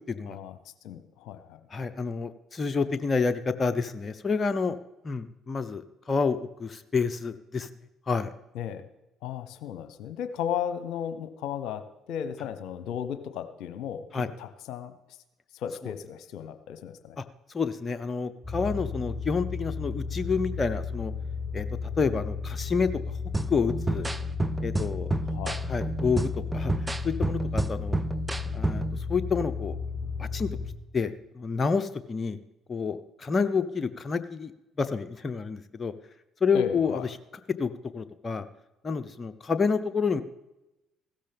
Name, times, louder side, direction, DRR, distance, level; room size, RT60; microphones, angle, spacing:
voice 1, 0.3-0.6 0.8-1.6 8.5-8.9 9.2-14.9 15.5-17.2 25.3-25.6 36.5-37.1, left 8 dB, 70° left, 10 dB, 0.9 m, -35 dB
voice 2, 1.7-4.8 5.0-7.7 8.1-8.3 14.1-14.3 17.5-21.1 21.5-21.7 22.0-22.9 23.5-24.1 24.6-25.2 25.7-26.7 27.0-28.0 28.5-28.8 29.1-29.7 30.2-30.5 30.9-32.4 32.7-34.5 34.8-35.9 36.4-37.0 37.6-38.4 38.8-40.2, left 5 dB, 35° left, 10 dB, 0.8 m, -28 dB
sound 1, 18.4-30.7, left 4 dB, 5° left, 5.3 m, -34 dB
sound 2, 23.3-29.0, right 2 dB, 15° right, 0.7 m, -30 dB
16.0 x 13.5 x 3.5 m, 0.95 s
hypercardioid pair, 55°, 0 cm